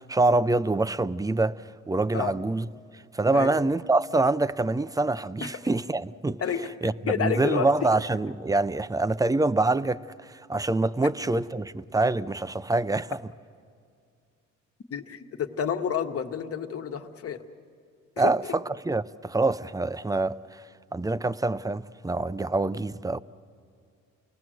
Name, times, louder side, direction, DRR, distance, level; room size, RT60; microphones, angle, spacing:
voice 1, 0.0-2.7 3.1-6.4 6.8-13.2 18.2-20.6 20.9-23.2, right 2 dB, 10° right, 0.5 m, -25 dB
voice 2, 7.0-7.7 14.9-17.4 18.2-18.3, left 8 dB, 50° left, 1.4 m, -29 dB
29.0 x 18.5 x 7.7 m
cardioid pair, 90°, 30 cm